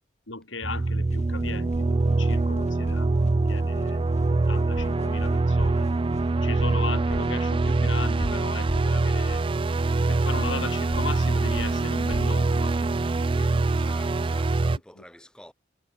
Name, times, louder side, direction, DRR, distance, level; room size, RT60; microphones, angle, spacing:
voice 1, 0.3-3.1 3.5-5.9 6.4-9.5 10.1-12.8 13.3-13.9 15.0-15.1, left 3 dB, 80° left, 5.7 m, -37 dB
sound 1, 0.6-14.8, right 3 dB, 25° right, 0.4 m, -24 dB
sound 2, 0.8-14.0, equal, 35° left, 6.6 m, -40 dB
voice 2, 13.7-15.5, equal, 5° left, 7.0 m, -48 dB
head